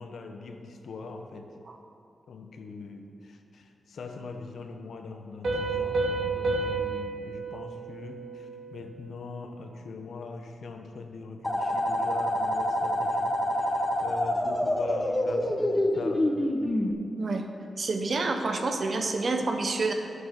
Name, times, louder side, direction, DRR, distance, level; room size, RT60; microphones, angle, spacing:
voice 1, 0.0-1.5 2.3-16.3, left 4 dB, 75° left, 5 dB, 0.9 m, -42 dB
Piano, 5.4-8.9, right 3 dB, 70° right, 2.3 m, -31 dB
sound 1, 11.4-16.9, left 1 dB, 20° left, 1.0 m, -27 dB
voice 2, 17.8-19.9, right 3 dB, 55° right, 5 dB, 1.0 m, -28 dB
8.4 x 7.8 x 6.0 m, 2.7 s
cardioid pair, 75°, 0 cm